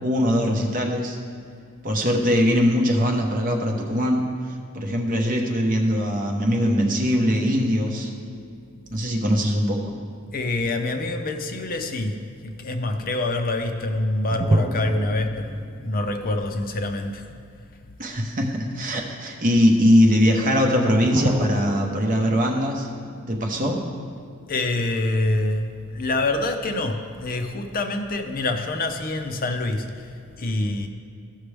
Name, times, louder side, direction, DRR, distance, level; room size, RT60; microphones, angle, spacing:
voice 1, 0.0-1.2 1.8-4.3 4.7-8.1 8.9-10.0 18.0-22.9 23.3-23.8, equal, 40° right, 1 dB, 1.0 m, -21 dB
sound 1, 6.5-9.8 14.3-17.4 17.6-17.7 21.1-24.4, right 1 dB, 20° right, 0.4 m, -30 dB
voice 2, 10.3-12.2 12.4-17.2 24.5-30.1 30.4-30.9, left 2 dB, 40° left, 6 dB, 0.6 m, -26 dB
14.5 x 6.0 x 3.3 m, 2.3 s
head